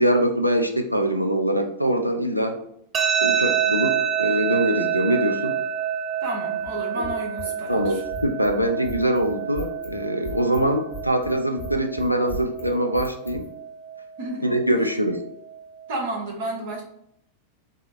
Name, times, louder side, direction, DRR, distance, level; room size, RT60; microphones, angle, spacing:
voice 1, 0.0-2.6 3.2-5.6 7.7-13.5 14.4-15.2, right 1 dB, 90° left, 5 dB, 0.4 m, -23 dB
sound 1, 2.9-15.9, right 8 dB, 25° right, 0.4 m, -28 dB
voice 2, 6.2-8.0 14.2-14.6 15.9-16.8, right 2 dB, 50° right, 0 dB, 1.0 m, -31 dB
sound 2, 6.6-13.5, left 1 dB, 65° left, 0.9 m, -37 dB
3.5 x 2.1 x 3.7 m, 0.73 s
figure-of-eight pair, 90°, 0 cm